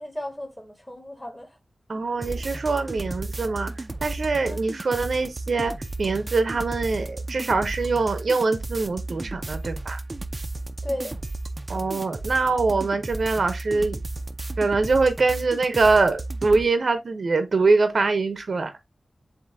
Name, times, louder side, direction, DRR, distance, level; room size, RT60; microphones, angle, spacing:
voice 1, 0.0-1.5 4.4-4.6 10.8-11.2, left 1 dB, 15° left, 1.6 m, -34 dB
voice 2, 1.9-5.7 6.0-10.0 11.7-14.0 14.6-18.7, right 3 dB, 65° right, 0.8 m, -23 dB
sound 1, 2.2-16.7, right 2 dB, 35° right, 0.5 m, -34 dB
7.4 x 2.7 x 2.6 m
wide cardioid pair, 85°, 0 cm